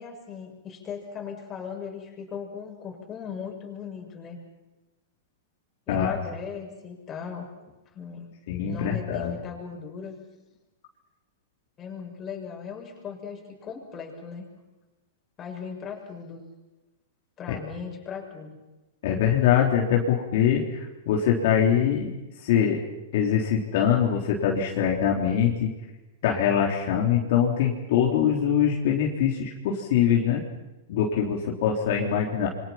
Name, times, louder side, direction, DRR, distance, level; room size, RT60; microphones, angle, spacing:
voice 1, 0.0-4.4 5.9-7.5 7.9-8.3 8.7-10.2 11.8-14.5 15.4-16.4 17.4-18.6, left 6 dB, 25° left, 1 dB, 6.8 m, -38 dB
voice 2, 8.5-9.3 19.0-22.1 22.4-22.8 23.1-25.7 26.2-30.4 30.9-32.5, left 8 dB, 60° left, -1 dB, 3.7 m, -23 dB
27.5 x 24.5 x 5.8 m, 1.1 s
hypercardioid pair, 140°, 0 cm